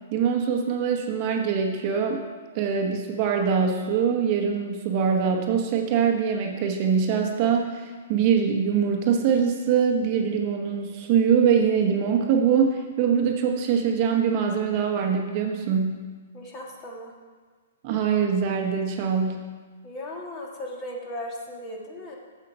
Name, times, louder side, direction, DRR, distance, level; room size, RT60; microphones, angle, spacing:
voice 1, 0.1-2.2 2.5-16.0 17.8-19.4, right 7 dB, 35° right, 3 dB, 1.0 m, -23 dB
voice 2, 16.3-17.1 19.8-22.2, left 1 dB, 25° left, 0 dB, 1.7 m, -37 dB
8.4 x 7.2 x 5.6 m, 1.5 s
hypercardioid pair, 155°, 0 cm